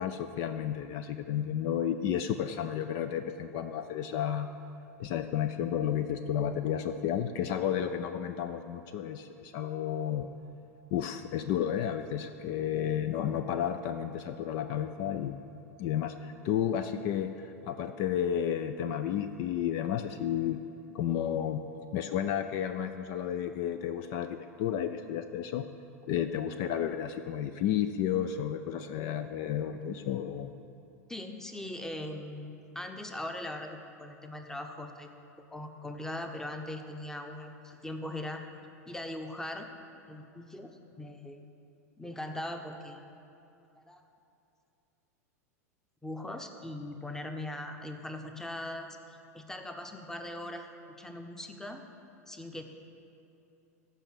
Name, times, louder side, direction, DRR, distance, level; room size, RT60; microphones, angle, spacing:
voice 1, 0.0-4.5 5.0-10.3 10.9-15.4 15.8-20.6 20.9-21.6 21.9-25.7 26.1-30.5, left 9 dB, 50° left, 9 dB, 0.5 m, -32 dB
voice 2, 31.1-35.1 35.5-38.4 38.9-39.7 40.1-41.4 42.0-43.0 43.8-44.0 46.0-50.7 51.0-51.8 52.3-52.6, left 1 dB, 5° left, 5 dB, 0.9 m, -40 dB
14.5 x 5.6 x 6.3 m, 2.7 s
figure-of-eight pair, 90°, 9 cm